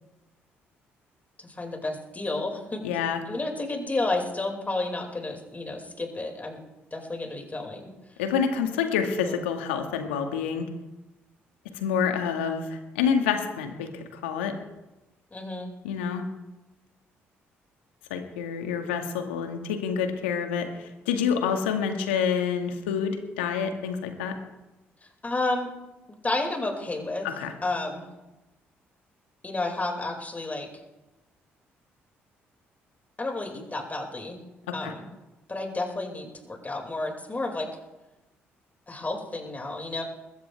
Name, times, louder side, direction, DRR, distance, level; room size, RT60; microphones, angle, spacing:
voice 1, 1.5-2.8 3.3-6.6 6.9-7.9 9.2-9.4 15.3-15.7 25.2-25.7 26.2-27.3 27.6-28.1 29.4-30.7 33.2-34.4 34.7-35.1 35.5-37.7 38.9-40.0, left 2 dB, 25° left, 2 dB, 5.4 m, -31 dB
voice 2, 2.8-3.2 8.2-10.7 11.7-13.9 14.2-14.5 15.8-16.3 18.1-24.3 27.2-27.5 34.7-34.9, left 7 dB, 85° left, 5 dB, 1.8 m, -27 dB
21.0 x 16.5 x 3.5 m, 1.0 s
hypercardioid pair, 50°, 6 cm